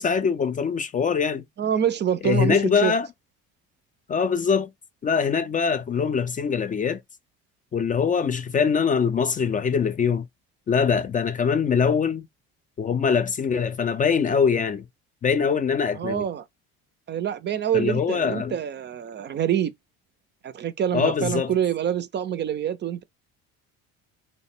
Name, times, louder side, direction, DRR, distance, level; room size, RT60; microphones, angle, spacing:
voice 1, 0.0-1.4 2.2-3.1 4.1-4.7 5.0-7.0 7.7-10.3 10.7-12.3 12.8-14.9 15.2-16.2 17.7-18.5 20.9-21.5, left 6 dB, 25° left, 0.4 m, -23 dB
voice 2, 1.6-2.9 15.9-16.4 17.1-19.7 20.4-23.0, right 9 dB, 35° right, 0.4 m, -26 dB
3.1 x 2.1 x 4.2 m
cardioid pair, 100°, 31 cm